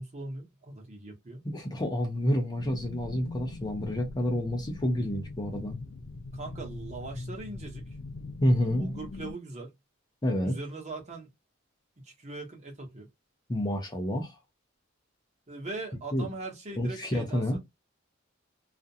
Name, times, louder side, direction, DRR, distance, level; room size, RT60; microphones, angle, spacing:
voice 1, 0.0-1.4 6.3-7.8 8.7-9.7 10.4-11.3 12.0-13.1 15.5-17.6, right 2 dB, 35° right, 0.9 m, -40 dB
voice 2, 1.4-5.8 8.4-8.9 10.2-10.6 13.5-14.4 16.1-16.3 16.8-17.6, equal, 20° left, 0.6 m, -28 dB
sound 1, 2.6-9.3, left 3 dB, 65° left, 0.5 m, -42 dB
2.4 x 2.1 x 2.6 m
head